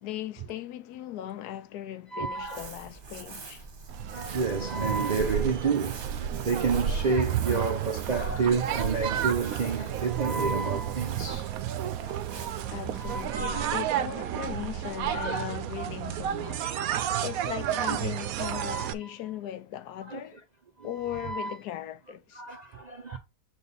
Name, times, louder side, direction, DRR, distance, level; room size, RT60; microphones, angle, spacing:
voice 1, 0.0-3.7 12.7-20.4 20.8-22.4, left 12 dB, 80° left, 1.1 m, -38 dB
voice 2, 2.1-2.7 4.1-11.5 12.0-12.3 12.9-13.7 15.1-15.5 17.8-18.0 18.5-18.9 20.1-20.2 20.8-21.6 22.3-23.2, right 4 dB, 50° right, 0.5 m, -30 dB
Crumpling crinkling, 2.3-14.7, right 4 dB, 35° right, 1.1 m, -45 dB
sound 1, 3.9-18.9, right 10 dB, 70° right, 1.0 m, -31 dB
7.1 x 3.5 x 4.0 m
omnidirectional pair, 1.7 m